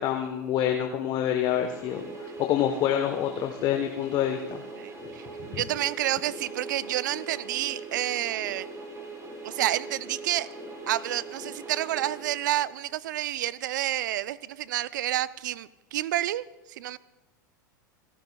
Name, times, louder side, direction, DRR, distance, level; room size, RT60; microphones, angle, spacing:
voice 1, 0.0-4.6 5.5-5.6, left 10 dB, 45° left, 5 dB, 1.0 m, -27 dB
sound 1, 1.1-13.0, right 2 dB, 25° right, 4.1 m, -41 dB
voice 2, 4.8-8.7 9.4-10.5 10.9-17.0, right 13 dB, 70° right, 18 dB, 0.5 m, -29 dB
28.5 x 11.5 x 2.3 m, 1.0 s
hypercardioid pair, 95°, 10 cm